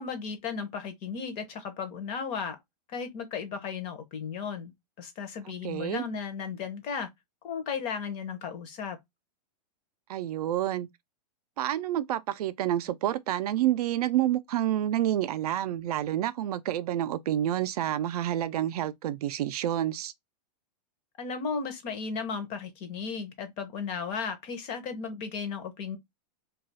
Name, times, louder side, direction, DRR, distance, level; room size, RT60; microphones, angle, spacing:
voice 1, 0.0-2.6 2.9-4.7 5.0-7.1 7.4-9.0 21.2-26.0, left 6 dB, 30° left, 0.6 m, -35 dB
voice 2, 5.6-6.0 10.1-10.9 11.6-20.1, right 12 dB, 65° right, 0.4 m, -28 dB
2.3 x 2.3 x 3.9 m
supercardioid pair, 155°, 21 cm